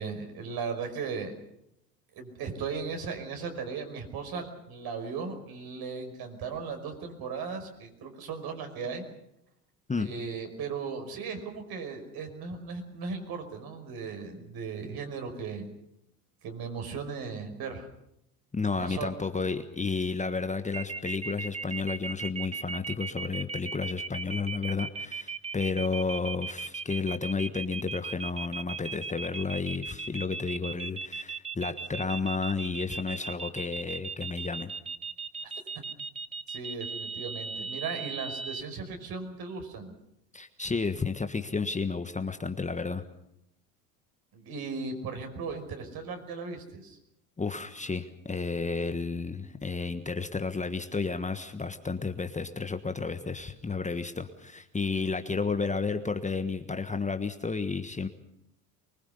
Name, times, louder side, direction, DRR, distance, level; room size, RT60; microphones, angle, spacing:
voice 1, 0.0-1.3 2.1-9.0 10.0-15.7 16.4-17.9 18.8-19.2 36.5-39.9 44.3-47.0, right 5 dB, 50° right, 5 dB, 5.4 m, -37 dB
voice 2, 18.5-34.7 40.3-43.0 47.4-58.1, left 4 dB, 15° left, 8 dB, 1.4 m, -32 dB
sound 1, 20.7-38.6, right 4 dB, 15° right, 0.8 m, -37 dB
24.0 x 21.0 x 6.9 m, 0.80 s
hypercardioid pair, 70°, 46 cm